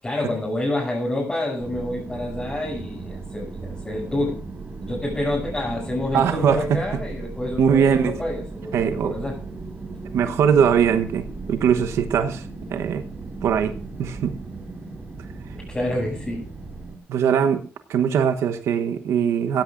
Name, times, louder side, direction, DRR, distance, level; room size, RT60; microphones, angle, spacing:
voice 1, 0.0-4.4 4.8-9.4 15.5-16.5, left 1 dB, 20° left, -5 dB, 6.9 m, -28 dB
sound 1, 1.6-17.0, right 3 dB, 40° right, 2.9 m, -36 dB
voice 2, 6.1-6.8 7.6-8.1 8.7-9.1 10.1-13.0 13.4-14.3 17.1-19.6, right 7 dB, 85° right, 9 dB, 1.0 m, -21 dB
17.0 x 16.0 x 2.5 m, 0.39 s
cardioid pair, 105°, 5 cm